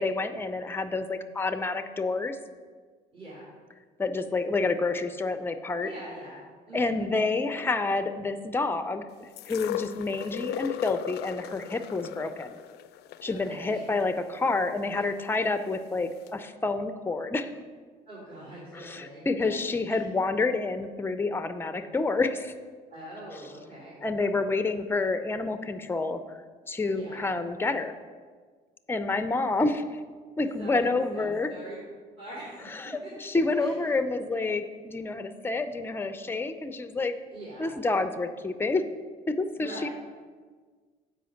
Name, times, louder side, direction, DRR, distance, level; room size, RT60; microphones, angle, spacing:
voice 1, 0.0-2.4 4.0-5.9 6.7-12.6 13.2-17.5 18.7-22.5 24.0-26.4 26.7-27.9 28.9-29.9 30.4-31.5 32.7-37.1 37.6-38.8 39.3-39.9, left 3 dB, 15° left, 9 dB, 0.5 m, -28 dB
voice 2, 3.1-3.5 5.8-6.4 6.7-7.1 13.2-13.9 18.1-20.0 22.9-24.0 26.8-27.3 30.4-31.8 32.2-32.8 33.0-33.1 33.5-33.7 37.3-37.7 39.6-39.9, right 1 dB, 35° right, -8 dB, 2.7 m, -43 dB
sound 1, 9.4-15.4 16.3-16.4, left 12 dB, 75° left, 0.4 m, -37 dB
7.9 x 5.0 x 6.4 m, 1.5 s
cardioid pair, 110°, 17 cm